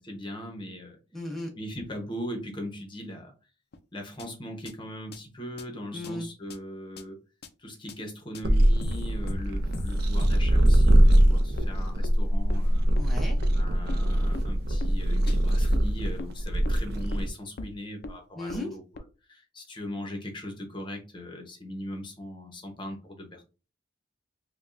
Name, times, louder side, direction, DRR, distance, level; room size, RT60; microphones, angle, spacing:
voice 1, 0.0-1.0 1.5-3.3 3.9-7.2 7.6-12.8 13.5-23.4, equal, 25° left, 2 dB, 1.0 m, -39 dB
voice 2, 1.1-1.5 5.9-6.3 13.0-13.4 18.4-18.7, left 1 dB, ahead, -2 dB, 0.8 m, -35 dB
sound 1, 3.7-3.8 4.2-4.3 4.7-4.8 5.1-5.2 5.6-5.7 6.0-6.1 6.5-6.6 7.0-7.1 7.4-7.5 7.9-8.0 8.3-8.4 8.8-11.7 12.0-12.1 12.5-12.6 13.0-13.1 13.4-13.5 13.9-14.0 14.3-14.4 14.8-14.9 15.3-15.4 15.7-15.8 16.2-16.3 16.6-16.7 17.1-17.2 17.6-17.7 18.0-18.1 18.5-18.6 18.9-19.0, left 1 dB, 60° left, 0.5 m, -35 dB
sound 2, 8.4-17.3, right 1 dB, 60° right, 0.6 m, -22 dB
5.1 x 2.3 x 2.6 m, 0.32 s
head